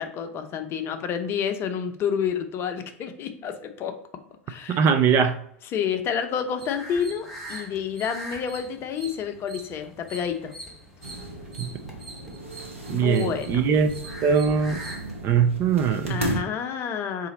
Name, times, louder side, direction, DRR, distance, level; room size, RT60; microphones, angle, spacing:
voice 1, 0.0-4.0 4.5-4.9 5.7-10.5 12.9-13.7 16.1-17.3, left 7 dB, 35° left, 0.6 m, -29 dB
voice 2, 4.7-5.4 11.6-11.7 12.9-13.9 14.2-14.8 15.2-16.2, right 6 dB, 35° right, 0.4 m, -21 dB
sound 1, 6.6-15.2, right 1 dB, ahead, 1.1 m, -42 dB
sound 2, 11.0-16.4, right 1 dB, 80° right, 0.8 m, -35 dB
3.9 x 2.5 x 4.0 m
figure-of-eight pair, 90°, 7 cm